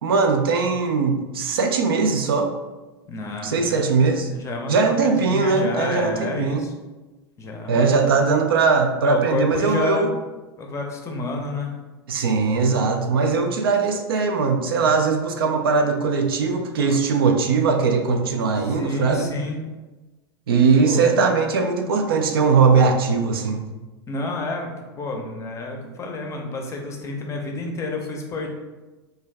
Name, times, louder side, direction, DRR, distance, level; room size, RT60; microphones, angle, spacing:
voice 1, 0.0-2.5 3.4-4.3 4.7-6.7 7.7-10.1 12.1-19.3 20.5-23.7, right 4 dB, 65° right, 5 dB, 0.4 m, -20 dB
voice 2, 3.1-4.0 4.3-4.7 5.0-6.6 7.4-7.9 9.0-10.0 10.6-11.7 16.8-17.0 18.8-19.6 20.9-21.0 24.1-24.7 25.0-28.5, left 2 dB, 20° left, 2 dB, 0.6 m, -29 dB
3.0 x 2.3 x 3.3 m, 1.1 s
figure-of-eight pair, 85°, 14 cm